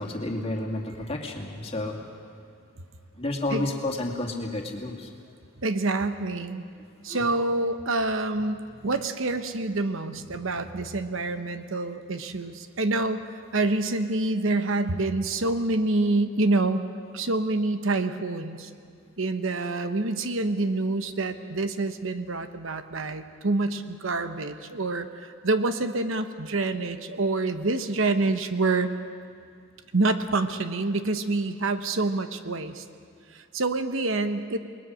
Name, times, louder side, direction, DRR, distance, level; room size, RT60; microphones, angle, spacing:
voice 1, 0.0-2.0 3.2-5.1 7.1-7.2 10.1-10.5, left 2 dB, 25° left, 1 dB, 2.3 m, -31 dB
voice 2, 5.6-6.6 7.0-16.8 17.1-18.7 19.2-28.9 29.9-32.8 33.3-34.6, right 2 dB, 65° right, 9 dB, 1.0 m, -27 dB
28.5 x 20.5 x 6.3 m, 2.3 s
head